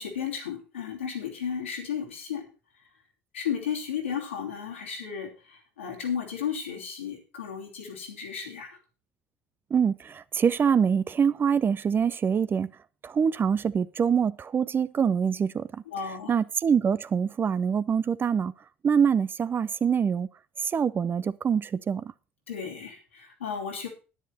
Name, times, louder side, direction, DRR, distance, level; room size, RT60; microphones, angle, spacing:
voice 1, 0.0-2.5 3.3-8.8 15.9-16.4 22.5-23.9, left 7 dB, 85° left, 3.1 m, -34 dB
voice 2, 9.7-12.7 13.0-15.6 16.3-18.5 18.8-20.3 20.6-22.0, right 7 dB, 35° right, 0.8 m, -24 dB
10.5 x 10.0 x 4.4 m
figure-of-eight pair, 60°, 6 cm